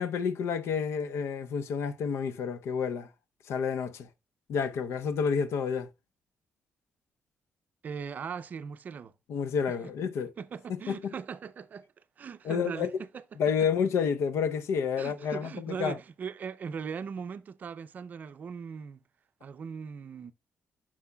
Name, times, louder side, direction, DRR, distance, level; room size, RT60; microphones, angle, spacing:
voice 1, 0.0-3.1 3.5-4.1 4.5-5.9 9.3-10.3 10.9-11.1 12.4-13.0 13.4-16.0, left 6 dB, 85° left, 0.6 m, -29 dB
voice 2, 7.8-9.1 10.4-11.9 12.2-13.2 15.0-19.0 19.4-20.3, right 6 dB, 40° right, 0.5 m, -39 dB
9.6 x 6.2 x 2.2 m
wide cardioid pair, 170°, 4 cm